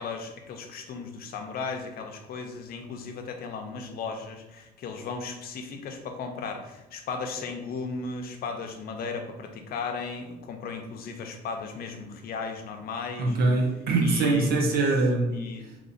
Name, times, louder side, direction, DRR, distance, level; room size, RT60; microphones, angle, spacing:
voice 1, 0.0-13.4 14.0-14.5 15.3-15.7, left 4 dB, 60° left, 5 dB, 0.6 m, -36 dB
voice 2, 13.2-15.4, right 2 dB, 65° right, 0 dB, 0.8 m, -23 dB
2.9 x 2.7 x 4.1 m, 1.0 s
cardioid pair, 110°, 17 cm